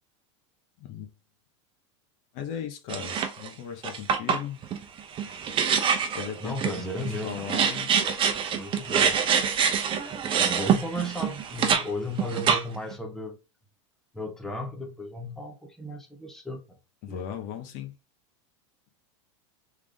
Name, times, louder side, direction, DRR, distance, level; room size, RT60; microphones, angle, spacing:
voice 1, 0.8-1.1 2.3-4.6 6.1-7.9 17.0-17.9, left 9 dB, 55° left, 1.2 m, -37 dB
sound 1, 2.9-3.5 3.8-11.8 12.2-12.9, right 7 dB, 30° right, 0.8 m, -25 dB
voice 2, 6.4-7.5 8.5-9.2 10.2-13.4 14.1-16.8 17.1-17.3, left 1 dB, ahead, 1.0 m, -35 dB
3.6 x 3.5 x 3.6 m
supercardioid pair, 115°, 16 cm